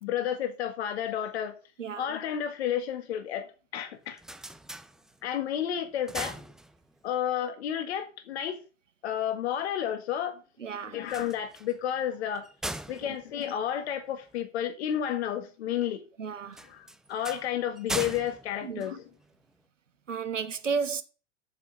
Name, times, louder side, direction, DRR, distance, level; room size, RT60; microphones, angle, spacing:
voice 1, 0.0-1.6 2.0-4.2 5.2-6.4 7.0-8.6 9.0-10.4 10.8-12.5 12.9-16.0 16.6-19.1, left 10 dB, 60° left, 1.8 m, -31 dB
sound 1, 3.9-5.5 5.8-7.2 10.9-14.4 16.5-19.6, right 1 dB, ahead, 0.5 m, -40 dB
voice 2, 10.6-11.0 13.0-13.2 16.2-16.6 18.6-19.0 20.1-21.0, right 5 dB, 80° right, 1.4 m, -32 dB
7.6 x 7.1 x 8.0 m
figure-of-eight pair, 100°, 37 cm